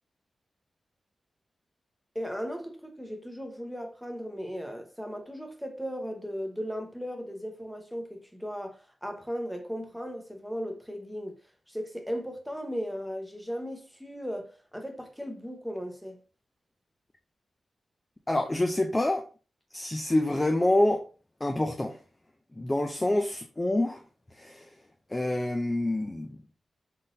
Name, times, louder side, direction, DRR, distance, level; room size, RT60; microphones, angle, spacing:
voice 1, 2.1-11.4 11.7-16.2, equal, ahead, 0.8 m, -37 dB
voice 2, 18.3-19.2 19.7-21.1 21.4-22.0 22.6-24.0 24.4-24.7 25.1-26.4, left 1 dB, 15° left, 0.4 m, -27 dB
3.8 x 3.8 x 2.6 m
wide cardioid pair, 115°, 0 cm